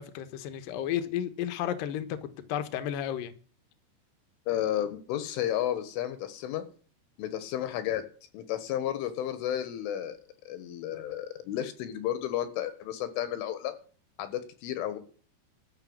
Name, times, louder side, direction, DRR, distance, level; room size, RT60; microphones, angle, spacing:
voice 1, 0.0-3.3, left 10 dB, 65° left, 2.4 m, -33 dB
voice 2, 4.5-6.7 7.2-8.0 8.3-10.2 10.5-13.7 14.2-15.0, left 11 dB, 85° left, 4.1 m, -32 dB
12.5 x 6.9 x 9.6 m
omnidirectional pair, 5.5 m